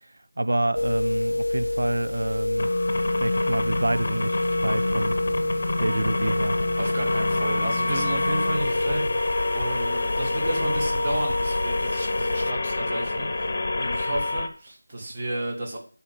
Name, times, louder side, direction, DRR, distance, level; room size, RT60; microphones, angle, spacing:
voice 1, 0.4-2.7 3.2-5.2 5.8-6.6, right 1 dB, 65° right, 0.5 m, -27 dB
sound 1, 0.7-12.5, left 1 dB, 80° left, 0.3 m, -28 dB
sound 2, 2.6-14.5, left 2 dB, 35° left, 0.9 m, -28 dB
sound 3, 3.7-9.2, right 2 dB, 80° right, 1.0 m, -38 dB
voice 2, 6.8-15.8, right 1 dB, 25° right, 1.7 m, -32 dB
9.0 x 4.3 x 6.7 m
figure-of-eight pair, 175°, 0 cm